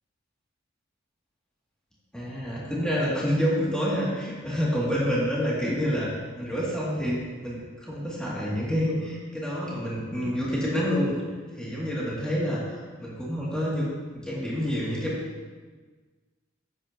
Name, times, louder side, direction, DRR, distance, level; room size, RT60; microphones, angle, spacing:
voice 1, 2.1-6.1 6.4-11.2 11.6-13.9 14.2-15.3, equal, 5° left, -8 dB, 2.4 m, -28 dB
10.5 x 8.8 x 2.9 m, 1.4 s
head